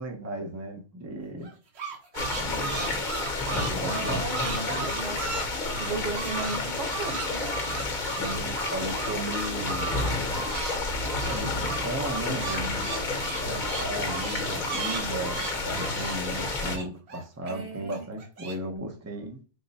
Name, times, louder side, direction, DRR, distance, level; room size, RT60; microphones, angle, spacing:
voice 1, 0.0-1.5 2.3-3.0 3.5-4.2 8.2-10.0 11.2-12.9 13.3-19.4, right 1 dB, 20° right, 0.5 m, -35 dB
sound 1, 1.4-6.6 6.8-10.8 11.0-17.5 17.9-18.5, right 5 dB, 65° right, 1.1 m, -36 dB
sound 2, 2.1-16.8, left 3 dB, 45° left, 1.0 m, -30 dB
voice 2, 3.9-7.5 17.5-18.1, right 3 dB, 85° right, 1.3 m, -35 dB
3.8 x 2.1 x 4.0 m
omnidirectional pair, 1.2 m